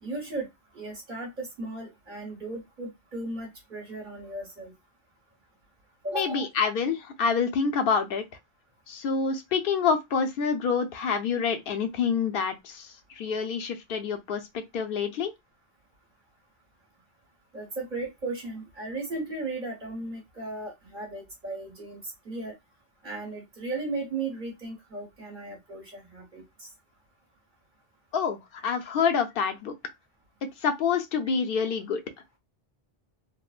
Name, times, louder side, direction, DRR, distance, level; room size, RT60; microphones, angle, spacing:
voice 1, 0.0-0.5 0.7-4.7 6.0-6.5 17.5-22.5 23.0-26.7, right 2 dB, 50° right, 1.4 m, -36 dB
voice 2, 6.1-8.2 8.9-15.3 28.1-29.7 30.6-32.0, left 6 dB, 65° left, 0.8 m, -27 dB
3.7 x 2.0 x 2.4 m
omnidirectional pair, 1.0 m